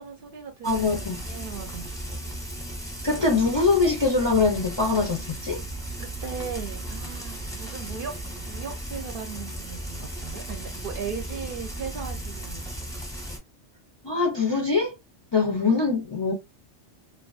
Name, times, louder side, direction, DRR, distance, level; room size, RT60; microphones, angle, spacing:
voice 1, 0.0-0.8 1.2-1.9 6.0-12.6, right 6 dB, 60° right, 0.6 m, -37 dB
voice 2, 0.6-1.2 3.0-5.6 14.0-14.9 15.3-16.3, left 4 dB, 40° left, 0.4 m, -23 dB
Frying (food), 0.6-13.4, right 1 dB, 5° left, 0.7 m, -36 dB
2.4 x 2.3 x 2.3 m
omnidirectional pair, 1.2 m